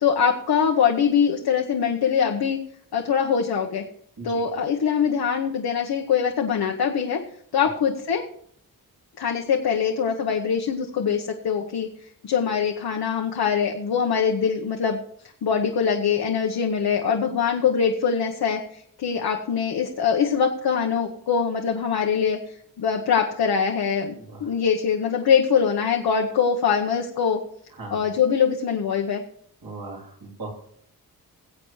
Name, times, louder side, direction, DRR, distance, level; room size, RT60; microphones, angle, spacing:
voice 1, 0.0-2.6 2.9-3.8 4.2-7.2 7.5-8.3 9.2-11.9 12.2-15.0 15.4-27.4 27.9-29.2, left 7 dB, 85° left, 1 dB, 1.0 m, -23 dB
voice 2, 29.6-30.5, right 3 dB, 65° right, -1 dB, 3.5 m, -38 dB
21.0 x 7.9 x 3.1 m, 0.65 s
wide cardioid pair, 90°, 37 cm